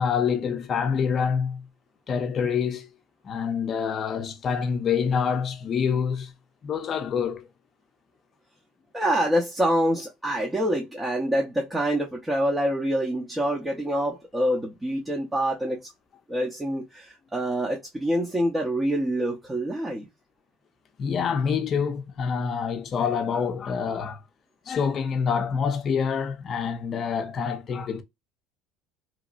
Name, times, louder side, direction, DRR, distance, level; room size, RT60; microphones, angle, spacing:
voice 1, 0.0-1.7 2.1-2.9 3.2-6.3 6.6-7.5 21.0-24.2 24.7-28.0, left 6 dB, 40° left, 0.6 m, -26 dB
voice 2, 8.9-15.8 16.3-20.1, equal, 10° right, 0.8 m, -26 dB
3.0 x 2.7 x 2.5 m
cardioid pair, 120°, 0 cm